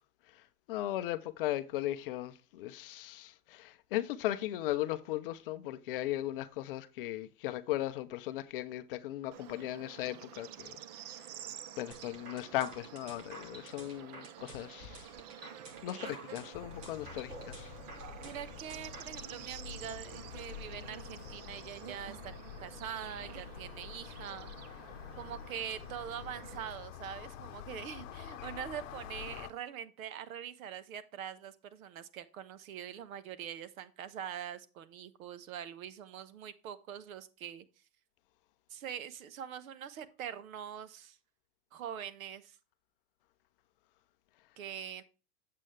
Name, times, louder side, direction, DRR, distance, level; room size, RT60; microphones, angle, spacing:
voice 1, 0.7-10.8 11.8-15.1 15.4-15.5 15.8-17.7, left 14 dB, 40° left, 0.5 m, -37 dB
Bird / Insect, 9.3-26.7, right 10 dB, 30° right, 0.4 m, -50 dB
sound 1, 11.9-19.3, right 3 dB, 80° right, 5.2 m, -50 dB
sound 2, 16.5-29.5, left 9 dB, 55° left, 0.9 m, -48 dB
voice 2, 18.2-22.3 22.6-24.5 25.2-37.6 38.7-41.2 41.7-42.6 44.6-45.0, right 9 dB, 65° right, 1.2 m, -43 dB
8.3 x 7.6 x 3.2 m
hypercardioid pair, 140°, 45 cm